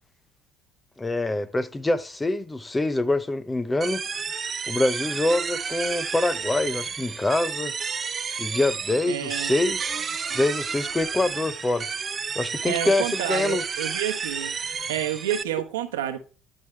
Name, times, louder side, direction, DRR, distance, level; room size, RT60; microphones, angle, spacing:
voice 1, 1.0-4.0 4.7-7.7 8.4-10.0 10.3-11.9 12.3-13.6, left 2 dB, 15° left, 0.8 m, -25 dB
sound 1, 3.8-15.4, right 6 dB, 35° right, 0.6 m, -31 dB
voice 2, 9.1-9.5 12.6-14.6 14.9-16.2, right 11 dB, 90° right, 1.1 m, -29 dB
12.0 x 4.7 x 3.2 m
hypercardioid pair, 70°, 0 cm